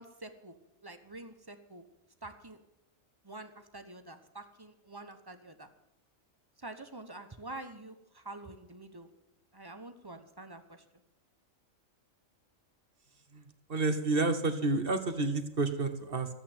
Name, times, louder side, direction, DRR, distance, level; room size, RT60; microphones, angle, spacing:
voice 1, 0.0-1.9 2.2-2.6 3.2-5.7 6.6-9.1 9.5-10.8, right 2 dB, 20° right, 8 dB, 0.9 m, -47 dB
voice 2, 13.7-16.3, right 3 dB, 45° right, 9 dB, 1.2 m, -30 dB
13.5 x 8.4 x 9.0 m, 0.90 s
omnidirectional pair, 1.4 m